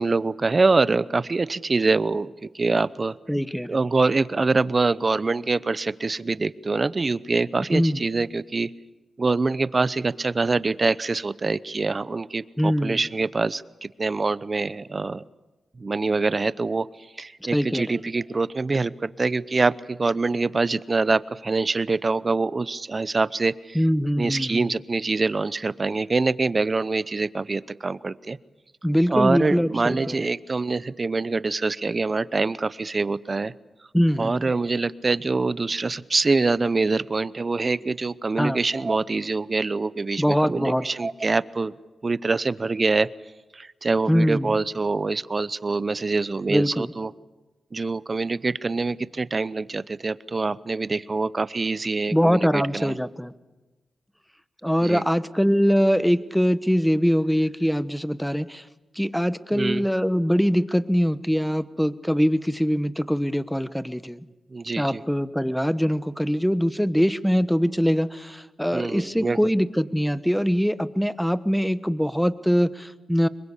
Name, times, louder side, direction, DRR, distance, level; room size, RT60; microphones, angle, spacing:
voice 1, 0.0-3.2 3.7-8.7 9.2-15.2 15.8-16.9 17.2-23.8 24.2-28.4 29.1-33.5 34.2-41.7 42.0-43.1 43.5-47.1 47.7-53.0 54.8-55.0 59.5-59.8 64.5-65.0 68.7-69.4, right 3 dB, 40° right, 18 dB, 0.8 m, -25 dB
voice 2, 3.3-3.8 7.7-8.0 12.6-13.0 17.4-18.0 23.7-24.7 28.8-30.2 33.9-34.5 38.4-38.6 40.2-40.8 44.1-44.5 46.5-46.9 52.1-53.3 54.6-58.6 59.0-64.2 64.8-73.3, equal, ahead, 14 dB, 1.1 m, -23 dB
25.5 x 22.5 x 8.4 m, 1.1 s
cardioid pair, 70°, 0 cm